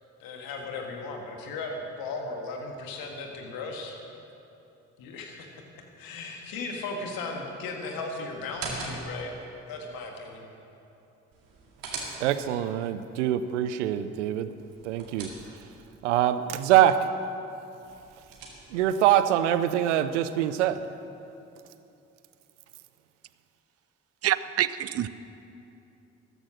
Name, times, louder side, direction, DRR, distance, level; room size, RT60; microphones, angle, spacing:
voice 1, 0.2-3.9 5.0-5.5 6.0-9.3 9.7-10.5, left 3 dB, 75° left, 2 dB, 1.8 m, -36 dB
sound 1, 8.4-9.3 11.3-12.6 14.6-15.8 17.8-18.9, right 3 dB, 70° right, 2.3 m, -40 dB
voice 2, 12.2-14.5 14.8-15.3 16.0-17.0 18.7-20.8, right 12 dB, 90° right, 13 dB, 0.5 m, -24 dB
voice 3, 24.2-25.1, right 11 dB, 45° right, 15 dB, 0.6 m, -26 dB
13.5 x 10.0 x 6.2 m, 2.8 s
hypercardioid pair, 40°, 35 cm